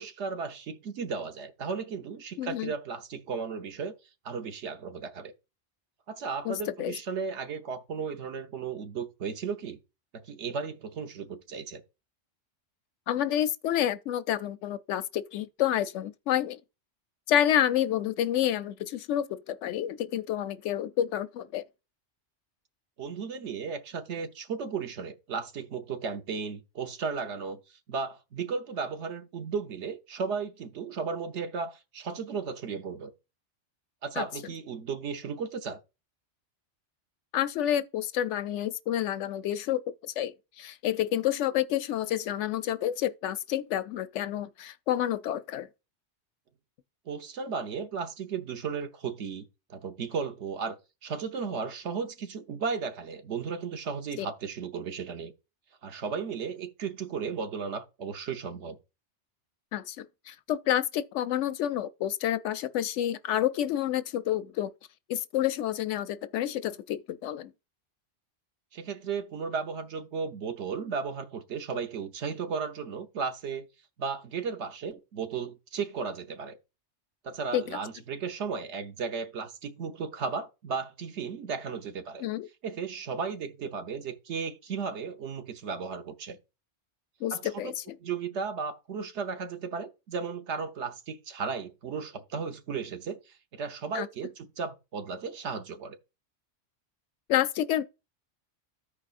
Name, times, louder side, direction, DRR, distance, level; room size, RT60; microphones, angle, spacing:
voice 1, 0.0-3.9 4.2-5.3 6.1-9.8 10.1-11.8 23.0-33.1 34.0-35.8 47.1-50.8 51.0-55.3 55.8-58.8 68.7-73.7 74.0-76.6 77.2-82.2 82.6-86.4 87.3-87.7 88.0-96.0, right 5 dB, 70° right, 1.1 m, -35 dB
voice 2, 2.4-2.7 6.4-6.9 13.1-16.6 17.3-21.6 34.2-34.3 37.3-45.7 54.2-54.3 59.7-64.7 65.1-67.5 77.5-77.6 82.2-82.5 87.2-87.7 93.9-94.1 97.3-97.8, left 11 dB, 75° left, 0.9 m, -29 dB
14.0 x 4.8 x 2.4 m
omnidirectional pair, 1.2 m